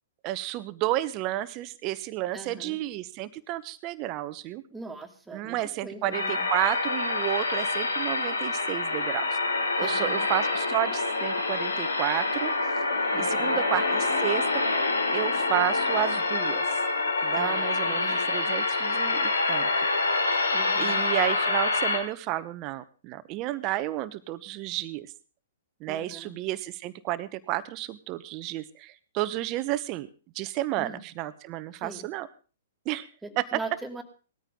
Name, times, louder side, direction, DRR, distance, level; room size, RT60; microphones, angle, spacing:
voice 1, 0.2-4.6 5.3-9.4 9.8-12.5 13.2-14.6 15.1-16.8 17.2-19.7 20.8-25.1 25.8-30.1 30.3-32.3 32.8-33.1 33.4-33.5, right 15 dB, 35° right, 15 dB, 1.0 m, -31 dB
voice 2, 2.3-2.8 4.7-5.6 5.8-6.5 9.8-10.3 13.1-13.6 17.3-18.2 20.5-21.0 25.8-26.3 30.8-31.1 31.8-32.1 33.2-34.0, right 2 dB, 10° right, 4 dB, 2.6 m, -41 dB
sound 1, 6.1-22.0, left 3 dB, 85° left, 3.2 m, -26 dB
19.0 x 14.0 x 3.8 m, 0.37 s
figure-of-eight pair, 120°, 0 cm